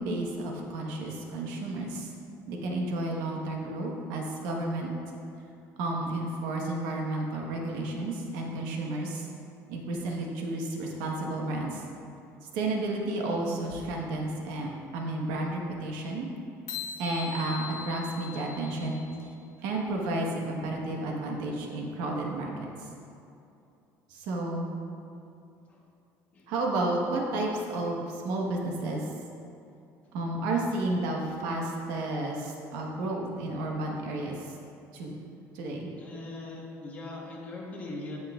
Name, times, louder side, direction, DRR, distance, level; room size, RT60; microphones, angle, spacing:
voice 1, 0.0-2.1 2.5-4.9 5.8-9.3 9.7-11.8 12.5-16.3 17.0-19.0 19.6-22.9 24.1-24.7 26.5-29.1 30.1-34.6 34.9-35.2 35.5-35.9, right 2 dB, 85° right, 0 dB, 1.3 m, -32 dB
sound 1, 16.7-19.3, left 7 dB, 65° left, 1.5 m, -40 dB
voice 2, 36.0-38.2, left 2 dB, 25° left, -2 dB, 1.2 m, -40 dB
16.0 x 5.7 x 2.5 m, 2.7 s
cardioid pair, 170°, 6 cm